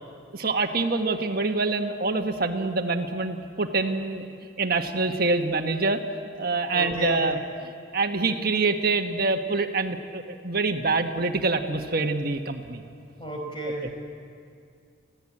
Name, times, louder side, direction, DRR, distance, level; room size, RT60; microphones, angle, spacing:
voice 1, 0.3-4.3 4.6-6.0 6.4-12.8, right 3 dB, 50° right, 5 dB, 1.4 m, -26 dB
voice 2, 6.7-7.2 13.2-14.0, equal, 25° left, -1 dB, 4.9 m, -33 dB
26.5 x 16.5 x 8.7 m, 2.4 s
head